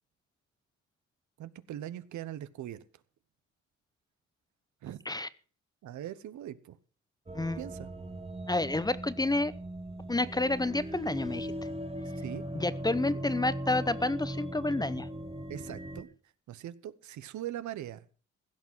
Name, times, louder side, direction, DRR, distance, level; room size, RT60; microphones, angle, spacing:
voice 1, 1.4-2.8 4.8-5.0 5.8-6.8 7.6-7.9 12.2-12.4 13.1-13.2 15.5-16.1 16.5-18.1, right 12 dB, 70° right, 15 dB, 1.0 m, -41 dB
sound 1, 7.3-16.0, right 1 dB, 20° right, 1.4 m, -39 dB
voice 2, 8.5-9.5 10.1-11.5 12.5-15.1, left 2 dB, 15° left, 16 dB, 0.8 m, -29 dB
16.0 x 6.1 x 7.5 m, 0.41 s
cardioid pair, 90°, 30 cm